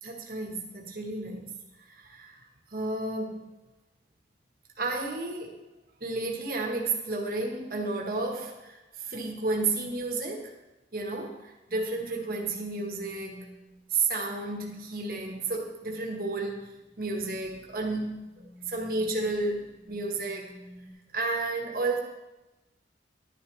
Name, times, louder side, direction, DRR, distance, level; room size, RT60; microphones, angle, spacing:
voice 1, 0.0-3.5 4.8-5.6 6.0-10.5 10.9-13.5 13.9-16.7 17.0-20.5 21.1-22.0, right 3 dB, 50° right, 0 dB, 1.5 m, -32 dB
sound 1, 11.7-13.8 16.8-17.2 18.0-20.9, left 1 dB, ahead, 1.2 m, -52 dB
11.0 x 11.0 x 3.4 m, 1.0 s
head